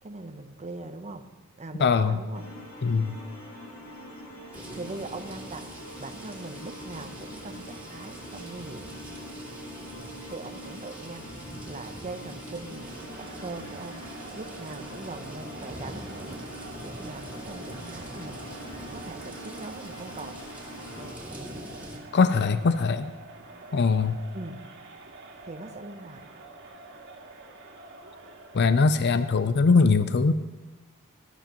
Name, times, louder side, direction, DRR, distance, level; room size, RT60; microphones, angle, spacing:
voice 1, 0.0-1.3 1.6-2.5 4.3-5.7 6.0-8.9 10.3-16.5 16.8-20.4 24.3-24.7 25.4-26.2, right 2 dB, 30° right, 0.7 m, -41 dB
voice 2, 1.8-2.2 2.8-3.2 22.1-23.1 23.7-24.2 28.5-30.3, left 4 dB, 50° left, 0.5 m, -21 dB
sound 1, 2.3-21.1, equal, 80° left, 2.3 m, -44 dB
sound 2, 4.5-22.0, right 1 dB, 10° right, 2.2 m, -44 dB
Crowd, 12.7-28.9, right 3 dB, 55° right, 1.9 m, -47 dB
19.0 x 12.5 x 3.0 m
head